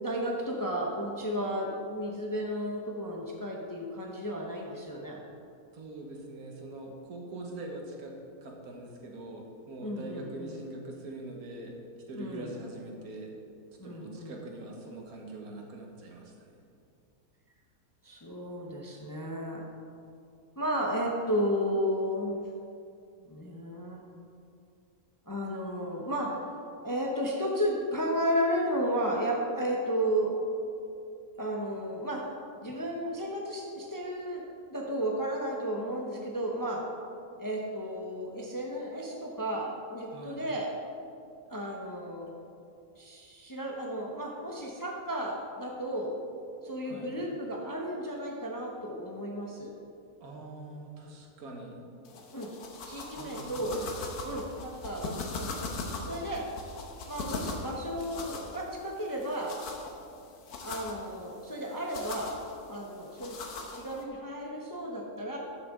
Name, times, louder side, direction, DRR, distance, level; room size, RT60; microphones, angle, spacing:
voice 1, 0.0-5.2 9.8-10.6 12.2-12.5 13.8-14.4 18.0-19.6 20.6-22.4 23.3-24.0 25.3-26.4 26.8-30.3 31.4-32.2 32.6-36.8 37.4-40.7 41.5-42.4 43.0-46.1 46.6-49.7 52.3-52.5 52.9-53.8 54.2-55.7 56.1-56.5 57.1-59.6 60.6-62.3 62.7-65.4, equal, 20° left, -1 dB, 0.7 m, -33 dB
voice 2, 5.7-11.8 12.1-13.4 13.8-16.6 40.1-40.4 46.9-47.2 50.2-51.8 53.2-54.3, right 2 dB, 75° right, 1 dB, 1.7 m, -43 dB
sound 1, 52.1-64.0, left 3 dB, 90° left, 1.4 m, -41 dB
12.0 x 6.8 x 3.7 m, 2.5 s
omnidirectional pair, 1.6 m